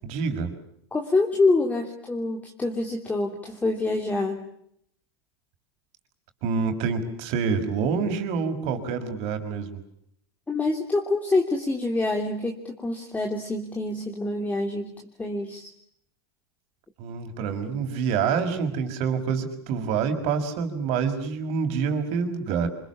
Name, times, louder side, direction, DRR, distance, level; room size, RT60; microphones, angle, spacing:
voice 1, 0.0-0.5 6.4-9.8 17.0-22.7, right 6 dB, 50° right, 7 dB, 5.7 m, -27 dB
voice 2, 0.9-4.4 10.5-14.9 15.2-15.7, left 2 dB, 10° left, 1 dB, 3.2 m, -26 dB
27.0 x 27.0 x 7.1 m, 0.72 s
supercardioid pair, 125°, 14 cm